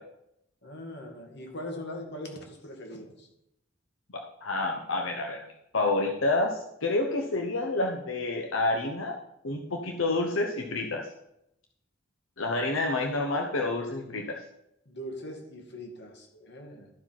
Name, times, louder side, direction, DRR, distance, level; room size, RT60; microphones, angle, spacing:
voice 1, 0.6-3.3 14.9-16.9, left 1 dB, 60° left, 2 dB, 2.2 m, -41 dB
voice 2, 4.1-5.4 5.7-9.2 9.4-11.1 12.4-14.4, left 2 dB, 85° left, 2 dB, 1.0 m, -28 dB
13.0 x 4.9 x 5.9 m, 0.82 s
head